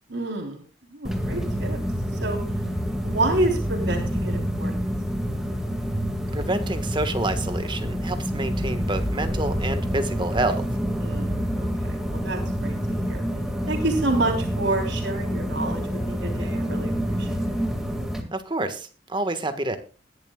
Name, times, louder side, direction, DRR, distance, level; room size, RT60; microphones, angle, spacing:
voice 1, 0.1-0.6 0.9-1.8 2.2-2.4 3.0-4.7 11.0-11.3 11.6-13.2 13.7-17.5, right 2 dB, 75° right, 1 dB, 3.5 m, -28 dB
sound 1, 1.0-18.2, equal, 5° right, 2.0 m, -27 dB
voice 2, 6.3-10.6 18.3-19.8, right 2 dB, 25° right, 9 dB, 1.4 m, -28 dB
20.5 x 11.0 x 2.3 m, 0.36 s
head